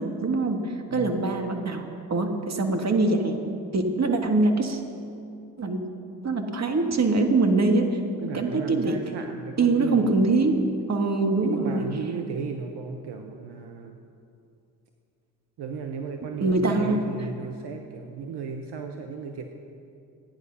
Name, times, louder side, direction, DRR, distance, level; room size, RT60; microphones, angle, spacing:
voice 1, 0.0-1.8 2.1-3.4 3.7-4.8 5.6-5.8 6.2-7.9 8.2-9.0 9.6-10.6 10.9-11.9 16.4-17.0, right 3 dB, 35° right, 4 dB, 1.8 m, -23 dB
voice 2, 0.9-1.3 8.2-10.2 11.4-14.0 15.6-19.5, right 5 dB, 60° right, 4 dB, 1.1 m, -35 dB
14.5 x 9.7 x 5.5 m, 2.6 s
hypercardioid pair, 50°, 45 cm